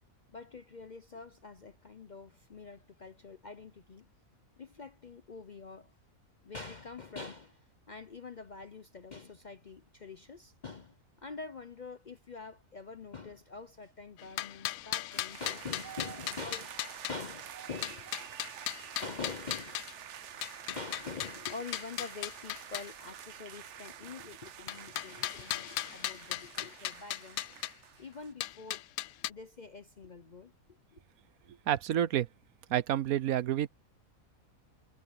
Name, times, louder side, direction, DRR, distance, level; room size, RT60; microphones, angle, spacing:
voice 1, 0.3-4.1 4.6-5.9 6.4-18.1 19.0-19.8 20.7-27.4 28.0-28.8 29.3-30.5 30.9-31.0, left 4 dB, 45° left, 0.7 m, -45 dB
sound 1, 14.2-17.1 17.8-19.9 20.4-22.9 24.7-27.7 28.4-29.3, left 14 dB, 80° left, 1.0 m, -37 dB
sound 2, 15.1-28.3, right 9 dB, 60° right, 1.1 m, -48 dB
voice 2, 31.7-32.3 32.7-33.7, right 11 dB, 85° right, 1.2 m, -29 dB
omnidirectional pair, 1.5 m